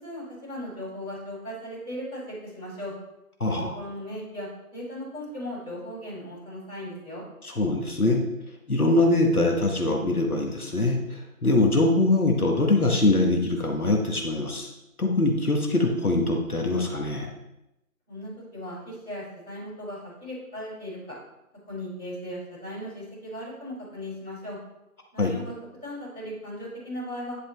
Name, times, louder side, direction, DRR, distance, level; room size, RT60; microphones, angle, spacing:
voice 1, 0.0-2.9 3.4-7.2 18.1-21.1 21.7-24.6 25.1-25.5 25.8-27.4, equal, 5° left, -20 dB, 3.0 m, -37 dB
voice 2, 7.4-8.2 8.7-14.7 15.0-17.3 25.2-25.3, left 2 dB, 75° left, 2 dB, 1.5 m, -23 dB
10.0 x 5.5 x 3.4 m, 0.88 s
figure-of-eight pair, 170°, 44 cm